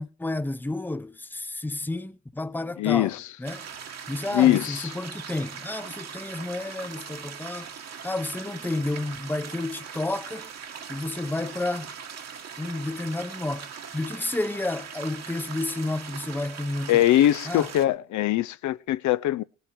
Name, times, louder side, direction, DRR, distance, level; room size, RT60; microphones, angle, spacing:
voice 1, 0.0-3.6 4.1-7.7 8.0-10.5 10.9-11.9 12.6-13.7 13.9-17.0 17.4-17.7, left 2 dB, 5° left, 0.7 m, -31 dB
voice 2, 2.8-3.2 4.3-4.9 16.9-19.4, left 13 dB, 70° left, 0.6 m, -22 dB
sound 1, 3.4-17.9, right 7 dB, 60° right, 1.7 m, -40 dB
18.5 x 9.2 x 4.6 m
cardioid pair, 90°, 30 cm